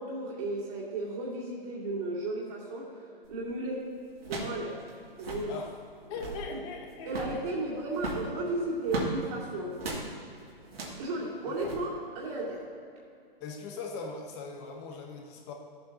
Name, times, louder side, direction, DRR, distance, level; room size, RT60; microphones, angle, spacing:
voice 1, 0.0-3.0 3.3-3.9 4.3-4.8 5.2-5.6 6.5-6.6 7.1-9.8 11.0-12.6, right 2 dB, 35° right, -9 dB, 2.4 m, -34 dB
sound 1, 3.2-3.5 4.2-4.6 4.9-5.0 5.1-5.5 6.0-6.5 7.1-7.4 7.9-9.2 9.8-10.1 10.7-11.0 11.6-11.8, right 2 dB, 80° right, 2.3 m, -36 dB
voice 2, 6.1-7.4 11.5-11.6 13.4-15.5, left 4 dB, 30° left, 1 dB, 1.1 m, -40 dB
14.5 x 7.9 x 2.9 m, 2.5 s
hypercardioid pair, 145°, 30 cm